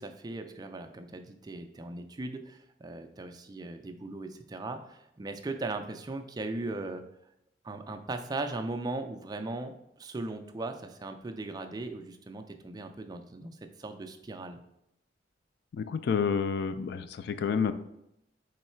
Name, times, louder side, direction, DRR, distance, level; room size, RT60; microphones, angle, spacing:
voice 1, 0.0-7.0 7.6-14.6, right 2 dB, 20° right, 6 dB, 0.3 m, -38 dB
voice 2, 15.7-17.7, left 6 dB, 60° left, 11 dB, 0.3 m, -29 dB
3.7 x 3.1 x 4.3 m, 0.80 s
head